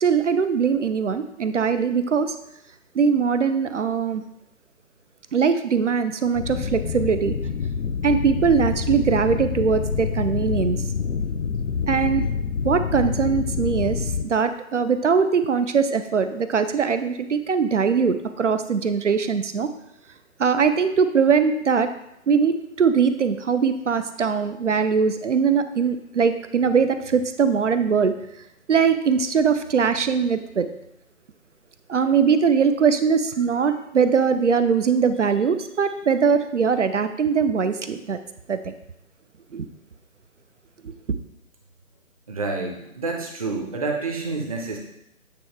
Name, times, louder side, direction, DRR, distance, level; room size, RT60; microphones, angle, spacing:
voice 1, 0.0-2.3 2.9-4.2 5.3-7.4 8.0-10.8 11.9-12.2 12.6-19.7 20.4-21.9 22.3-28.1 28.7-30.7 31.9-38.2 38.5-38.7 39.5-39.7, right 6 dB, 55° right, 10 dB, 0.5 m, -21 dB
sound 1, 6.4-14.2, left 5 dB, 65° left, 0.6 m, -26 dB
voice 2, 42.3-44.8, right 3 dB, 25° right, 1 dB, 0.8 m, -28 dB
8.6 x 3.1 x 4.6 m, 0.81 s
figure-of-eight pair, 150°, 43 cm